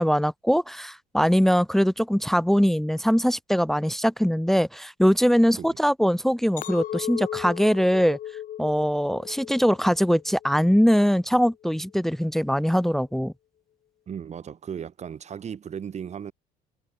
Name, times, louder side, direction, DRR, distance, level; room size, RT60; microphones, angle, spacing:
voice 1, 0.0-8.2 8.6-13.3, equal, ahead, 1.0 m, -22 dB
Chink clink, 6.6-10.9 11.4-11.8, left 11 dB, 55° left, 0.8 m, -37 dB
voice 2, 14.1-16.3, right 8 dB, 40° right, 2.3 m, -36 dB
cardioid pair, 110°, 17 cm